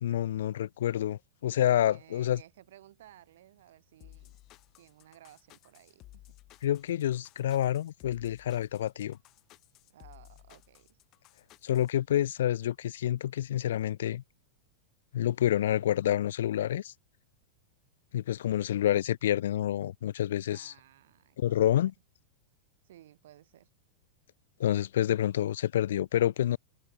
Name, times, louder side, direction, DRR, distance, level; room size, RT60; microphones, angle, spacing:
voice 1, 0.0-2.4 6.6-9.2 11.6-14.2 15.1-16.9 18.1-20.7 21.4-21.9 24.6-26.6, left 11 dB, 75° left, 0.4 m, -28 dB
voice 2, 1.8-4.4 4.8-6.2 9.9-11.0 20.5-21.7 22.8-23.7, right 13 dB, 70° right, 2.8 m, -57 dB
sound 1, 4.0-11.9, left 17 dB, 40° left, 4.1 m, -56 dB
hypercardioid pair, 110°, 0 cm